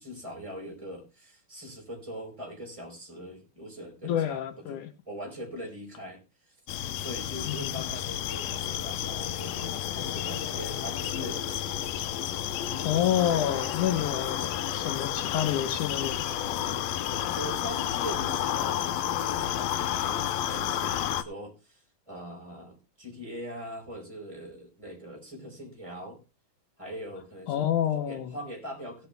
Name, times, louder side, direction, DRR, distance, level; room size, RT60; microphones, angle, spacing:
voice 1, 0.0-6.2 6.5-6.6 7.0-11.8 13.9-14.2 17.3-26.2 26.8-27.7 27.9-29.1, equal, 10° right, 4.6 m, -42 dB
voice 2, 4.0-4.9 7.4-7.7 12.8-14.5 14.7-16.3 27.5-28.4, left 10 dB, 70° left, 2.2 m, -28 dB
sound 1, 6.7-21.2, left 10 dB, 90° left, 1.5 m, -31 dB
17.0 x 8.1 x 3.4 m
omnidirectional pair, 4.1 m